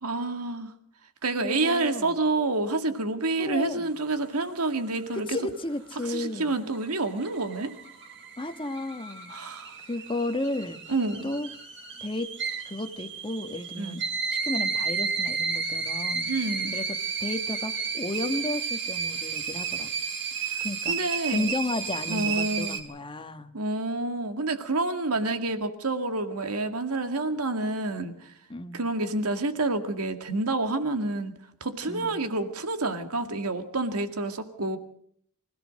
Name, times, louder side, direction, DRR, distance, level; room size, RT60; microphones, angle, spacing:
voice 1, 0.0-0.7 1.2-5.3 6.1-7.7 9.3-9.7 10.9-11.3 13.8-14.0 16.3-16.7 20.4-21.5 22.1-22.8 23.5-28.3 28.7-31.3 31.6-34.8, right 2 dB, 85° right, 8 dB, 2.1 m, -28 dB
voice 2, 1.4-2.2 3.4-3.9 5.1-6.5 8.4-9.3 9.8-10.8 11.2-11.5 12.0-12.3 12.6-14.0 14.3-16.3 16.7-19.9 20.6-20.9 21.3-23.5 28.5-28.8 31.9-32.2, left 2 dB, 25° left, 8 dB, 1.3 m, -33 dB
sound 1, 6.5-22.8, right 5 dB, 55° right, 3.1 m, -32 dB
25.5 x 16.5 x 6.4 m, 0.64 s
head